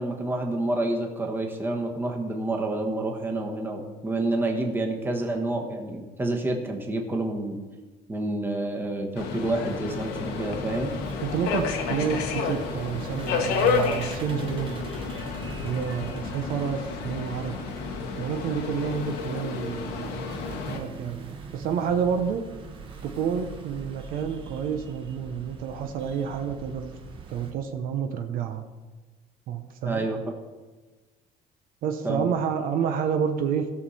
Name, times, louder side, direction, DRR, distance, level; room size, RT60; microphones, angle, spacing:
voice 1, 0.0-7.6 8.1-10.9 29.8-30.2 32.0-32.3, right 2 dB, 15° right, 2 dB, 1.2 m, -28 dB
Subway metro underground, 9.2-20.8, left 5 dB, 85° left, 1.3 m, -31 dB
sound 1, 9.9-27.5, right 4 dB, 30° right, 1.3 m, -43 dB
voice 2, 11.2-14.9 15.6-17.6 18.2-20.2 20.7-22.5 23.0-27.0 27.3-28.7 29.5-30.1 31.8-33.7, right 7 dB, 60° right, 6 dB, 0.9 m, -29 dB
17.0 x 6.4 x 4.2 m, 1.2 s
cardioid pair, 165°, 16 cm